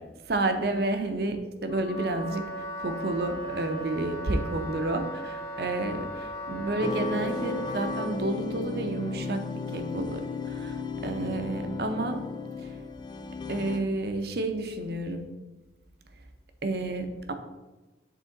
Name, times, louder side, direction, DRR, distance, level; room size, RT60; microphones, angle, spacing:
voice 1, 0.3-2.5 2.8-9.4 9.7-12.2 12.6-12.7 13.5-15.2 16.6-17.3, right 2 dB, 55° right, 7 dB, 0.6 m, -30 dB
Wind instrument woodwind instrument, 1.7-8.2, right 1 dB, 55° left, 0.9 m, -37 dB
sound 1, 6.8-13.8, left 4 dB, 25° left, 0.3 m, -35 dB
7.6 x 3.7 x 3.8 m, 1.1 s
head